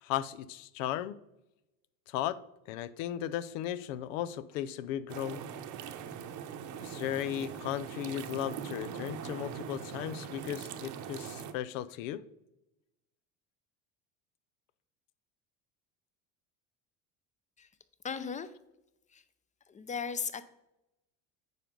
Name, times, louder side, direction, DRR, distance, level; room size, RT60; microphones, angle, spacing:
voice 1, 0.0-1.2 2.1-2.4 2.7-5.4 6.8-12.2, left 11 dB, 90° left, 16 dB, 0.6 m, -36 dB
sound 1, 5.1-11.5, right 8 dB, 50° right, 0.9 m, -41 dB
voice 2, 18.0-18.5 19.1-19.2 19.7-20.4, left 6 dB, 20° left, 14 dB, 0.5 m, -36 dB
9.2 x 5.4 x 3.8 m, 0.91 s
supercardioid pair, 105°, 38 cm